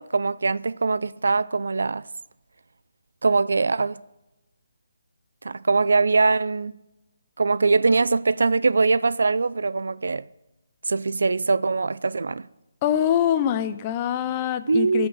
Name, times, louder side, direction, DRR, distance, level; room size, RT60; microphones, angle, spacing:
voice 1, 0.0-2.1 3.2-4.0 5.4-6.7 7.4-10.3 10.9-12.5 14.7-15.1, right 4 dB, 75° right, 0.4 m, -22 dB
voice 2, 12.8-15.1, left 10 dB, 20° left, 0.6 m, -24 dB
14.0 x 6.4 x 7.5 m
hypercardioid pair, 165°, 0 cm